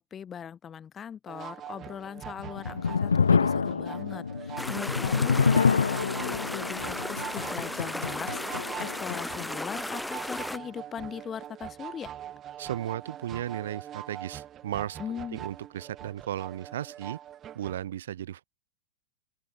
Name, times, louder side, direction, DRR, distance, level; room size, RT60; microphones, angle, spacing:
voice 1, 0.0-12.1 15.0-15.4, left 8 dB, 25° left, 4.5 m, -40 dB
sound 1, 1.3-17.8, right 11 dB, 30° right, 6.9 m, -43 dB
sound 2, 2.3-9.5, left 5 dB, 75° left, 0.7 m, -27 dB
sound 3, 4.6-10.6, left 1 dB, 5° left, 0.9 m, -35 dB
voice 2, 12.6-17.2 17.6-18.4, right 11 dB, 60° right, 5.2 m, -35 dB
open air
figure-of-eight pair, 90°, 0 cm